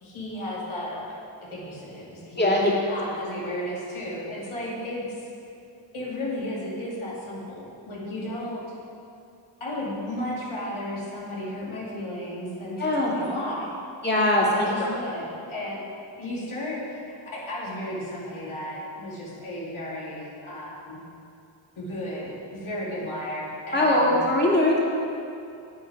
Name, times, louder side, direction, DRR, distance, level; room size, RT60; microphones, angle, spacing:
voice 1, 0.0-1.1 1.4-2.5 2.9-5.3 5.9-8.6 9.6-13.7 14.5-15.8 16.2-17.0 17.3-21.0 21.8-24.2, left 1 dB, 90° left, -6 dB, 2.3 m, -34 dB
voice 2, 2.4-2.7 12.8-13.1 14.0-14.9 23.7-24.8, left 1 dB, 20° left, -4 dB, 2.4 m, -21 dB
10.5 x 8.0 x 4.7 m, 2.6 s
cardioid pair, 60°, 47 cm